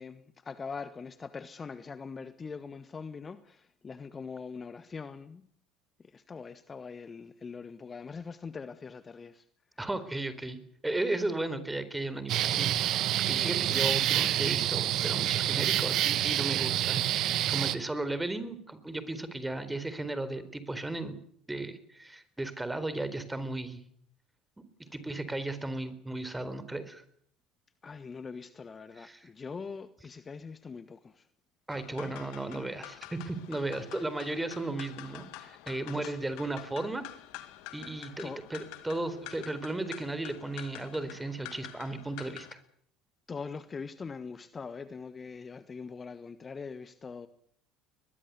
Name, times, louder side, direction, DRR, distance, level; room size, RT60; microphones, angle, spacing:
voice 1, 0.0-5.5 6.1-9.4 27.8-31.3 35.9-36.1 38.2-38.4 43.3-47.3, left 5 dB, 30° left, 1.3 m, -42 dB
voice 2, 9.8-10.6 10.8-21.1 21.5-23.8 24.9-27.0 29.0-29.3 31.7-37.0 37.7-42.6, right 2 dB, 10° right, 4.1 m, -35 dB
sound 1, 12.3-17.7, right 12 dB, 55° right, 1.5 m, -27 dB
sound 2, 31.7-42.5, left 15 dB, 65° left, 2.1 m, -47 dB
22.0 x 21.5 x 8.3 m
figure-of-eight pair, 65°, 0 cm